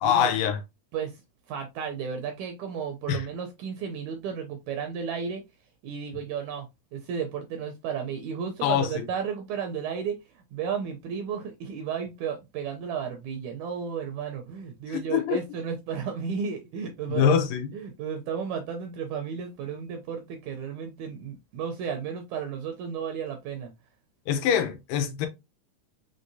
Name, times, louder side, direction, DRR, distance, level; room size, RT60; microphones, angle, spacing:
voice 1, 0.0-0.6 3.1-3.3 8.6-9.0 14.9-15.4 17.1-17.7 24.3-25.3, left 8 dB, 85° left, 2.5 m, -24 dB
voice 2, 1.5-5.4 5.8-10.2 10.5-17.4 17.7-23.7, right 7 dB, 75° right, 1.8 m, -33 dB
5.5 x 3.3 x 2.6 m
omnidirectional pair, 3.8 m